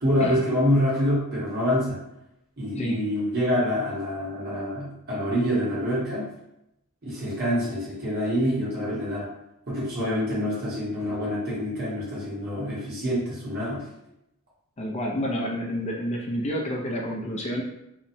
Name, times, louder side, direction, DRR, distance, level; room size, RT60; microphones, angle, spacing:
voice 1, 0.0-2.0 2.6-6.3 7.0-9.3 9.7-13.9, equal, 45° right, -7 dB, 1.0 m, -26 dB
voice 2, 14.8-17.6, equal, 30° left, -1 dB, 0.4 m, -29 dB
2.8 x 2.1 x 2.6 m, 0.85 s
head